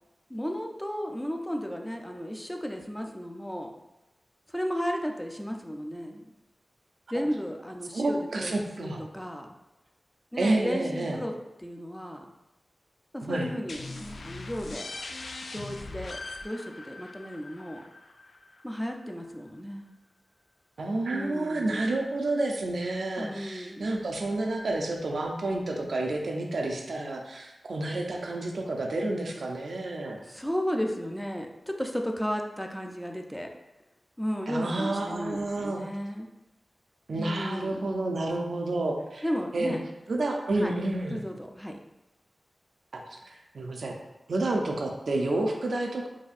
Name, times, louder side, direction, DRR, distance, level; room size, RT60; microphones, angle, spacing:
voice 1, 0.3-3.7 4.5-6.2 7.1-9.5 10.3-11.3 11.6-12.3 13.1-14.9 15.5-17.8 18.6-19.9 21.1-21.9 23.2-24.1 30.2-33.5 34.2-36.3 37.2-37.9 39.2-39.8 40.6-40.7 41.1-41.8, equal, 5° left, 3 dB, 0.3 m, -34 dB
voice 2, 7.9-9.1 10.4-11.2 13.2-13.5 20.8-30.2 34.5-35.8 37.1-39.2 39.5-39.7 40.1-41.2 42.9-44.0 44.3-46.1, right 2 dB, 75° right, 1 dB, 0.5 m, -30 dB
sound 1, 13.7-19.1, left 3 dB, 75° left, 0.3 m, -41 dB
4.0 x 2.6 x 2.4 m, 0.98 s
wide cardioid pair, 80°, 0 cm